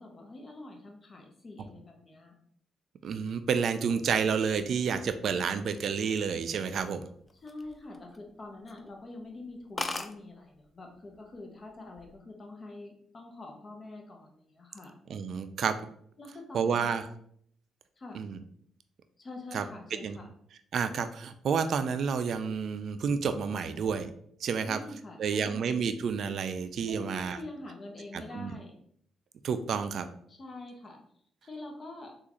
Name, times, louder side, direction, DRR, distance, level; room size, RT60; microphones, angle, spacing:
voice 1, 0.0-2.4 7.4-14.9 16.2-17.0 18.0-18.3 19.2-20.3 24.6-25.6 26.9-28.8 30.3-31.0 31.4-32.1, left 2 dB, 40° left, 2 dB, 0.9 m, -45 dB
voice 2, 3.0-7.0 15.1-15.8 16.5-17.1 18.1-18.4 19.5-19.6 20.0-20.2 20.7-24.1 24.4-24.8 25.2-27.4 28.1-28.5 29.4-30.1, right 6 dB, 65° right, 10 dB, 0.3 m, -30 dB
sound 1, 7.3-8.3 8.7-8.9 9.2-9.3 9.5-9.6 9.8-10.1 11.0-11.4 11.7-12.1, left 2 dB, 25° left, 0.4 m, -36 dB
3.6 x 2.4 x 3.0 m, 0.65 s
supercardioid pair, 55°, 0 cm